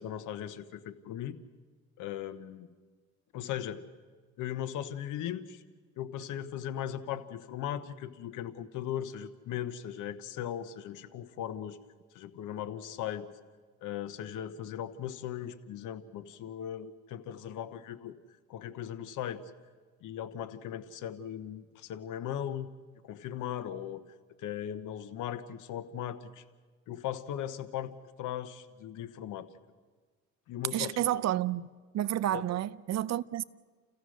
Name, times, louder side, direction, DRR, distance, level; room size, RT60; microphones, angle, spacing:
voice 1, 0.0-1.4 2.0-2.7 3.3-3.9 4.4-5.6 6.0-11.8 12.1-13.3 13.8-18.1 18.5-19.5 20.0-22.7 23.0-24.0 24.4-26.4 26.9-27.9 28.2-29.5 30.5-31.2 32.3-32.4, left 10 dB, 90° left, 1.1 m, -38 dB
voice 2, 30.7-31.7 31.9-33.4, right 12 dB, 60° right, 0.6 m, -30 dB
30.0 x 15.5 x 6.4 m
cardioid pair, 90°, 30 cm